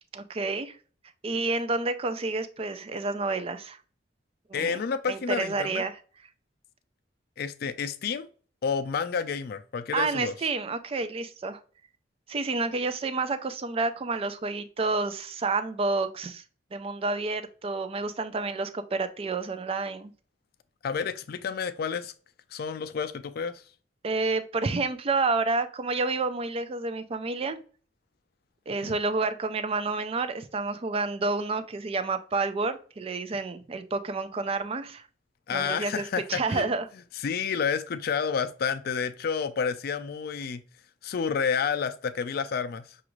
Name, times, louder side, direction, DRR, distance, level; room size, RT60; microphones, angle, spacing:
voice 1, 0.1-0.7 1.2-3.8 4.5-4.8 5.1-6.0 9.9-11.6 12.3-16.4 16.7-20.1 24.0-27.6 28.7-35.0 35.5-36.0 36.3-36.9, right 3 dB, 30° right, 0.4 m, -29 dB
voice 2, 4.5-5.8 7.4-8.3 8.6-10.4 20.8-22.1 22.5-23.6 28.8-28.9 35.5-36.7 37.1-40.6 41.0-43.0, left 6 dB, 55° left, 0.4 m, -30 dB
6.0 x 2.4 x 3.0 m
head